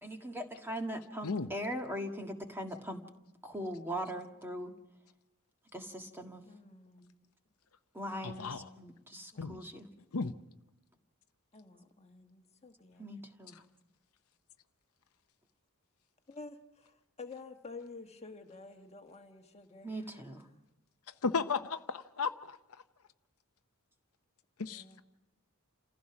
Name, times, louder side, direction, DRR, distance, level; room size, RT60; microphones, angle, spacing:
voice 1, 0.0-3.0 3.4-4.7 5.7-6.4 7.9-9.9 13.0-13.5 19.8-20.5, equal, 10° right, 3 dB, 1.7 m, -40 dB
voice 2, 6.5-7.1 9.3-9.5 11.5-13.1 16.3-20.3 24.6-25.0, left 3 dB, 30° left, 5 dB, 1.4 m, -50 dB
voice 3, 8.2-8.7 9.4-9.6 10.1-10.3 21.2-22.6 24.6-25.0, left 4 dB, 70° left, 9 dB, 0.8 m, -34 dB
29.0 x 15.5 x 6.0 m, 0.95 s
head